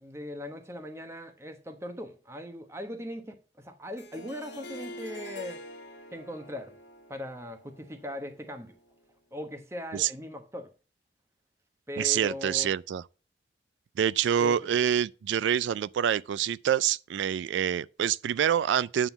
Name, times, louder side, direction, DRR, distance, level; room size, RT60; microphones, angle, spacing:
voice 1, 0.0-5.6 6.1-6.7 7.1-8.7 9.3-10.7 11.9-12.7 14.4-14.6, left 1 dB, 15° right, 1.0 m, -39 dB
Harp, 4.0-8.9, left 1 dB, 75° left, 1.6 m, -46 dB
voice 2, 12.0-13.0 14.0-19.1, right 9 dB, 85° right, 0.3 m, -26 dB
9.0 x 3.8 x 7.0 m
head